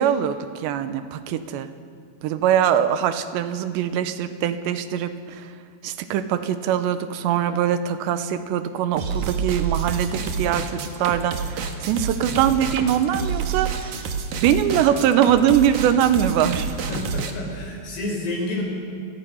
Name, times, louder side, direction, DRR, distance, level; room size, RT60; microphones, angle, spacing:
voice 1, 0.0-1.7 2.2-5.5 5.8-14.1 14.4-16.8, right 9 dB, 90° right, 10 dB, 3.2 m, -22 dB
sound 1, 9.0-17.3, right 6 dB, 60° right, 2.3 m, -28 dB
voice 2, 16.9-18.6, left 2 dB, 70° left, -1 dB, 7.2 m, -29 dB
29.5 x 20.0 x 5.5 m, 2.2 s
omnidirectional pair, 4.9 m